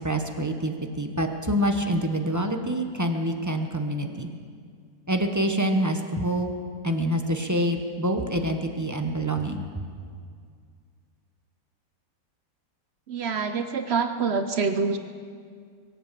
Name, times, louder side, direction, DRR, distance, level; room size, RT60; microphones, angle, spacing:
voice 1, 0.0-4.3 5.1-6.5 6.8-9.8, right 1 dB, 15° right, 4 dB, 0.8 m, -26 dB
voice 2, 13.1-15.0, right 5 dB, 55° right, 8 dB, 0.8 m, -26 dB
23.0 x 7.9 x 7.5 m, 2.1 s
omnidirectional pair, 1.6 m